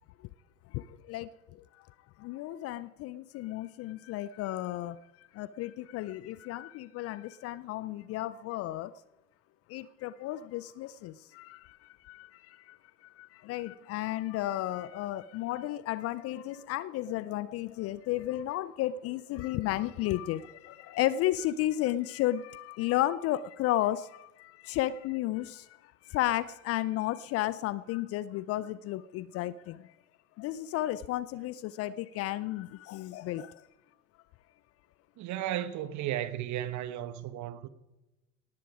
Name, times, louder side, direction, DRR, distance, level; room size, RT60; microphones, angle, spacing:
voice 1, 0.7-1.6 2.2-8.9 9.7-29.9 30.4-33.7, left 14 dB, 35° left, 0.5 m, -33 dB
voice 2, 35.2-37.7, right 12 dB, 40° right, 1.3 m, -34 dB
18.5 x 14.5 x 4.9 m
hypercardioid pair, 90°, 45 cm